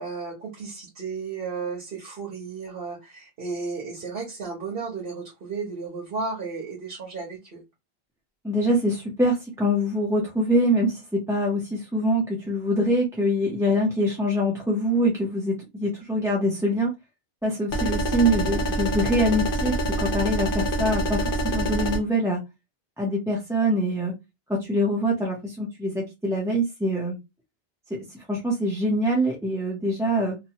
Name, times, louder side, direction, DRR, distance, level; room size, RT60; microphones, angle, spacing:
voice 1, 0.0-7.6, right 4 dB, 65° right, 1.1 m, -34 dB
voice 2, 8.4-16.9 17.4-22.4 23.0-24.1 24.5-27.2 27.9-30.4, equal, 5° right, 0.6 m, -24 dB
sound 1, 17.7-22.0, right 1 dB, 60° left, 0.9 m, -26 dB
2.9 x 2.1 x 2.8 m
omnidirectional pair, 1.1 m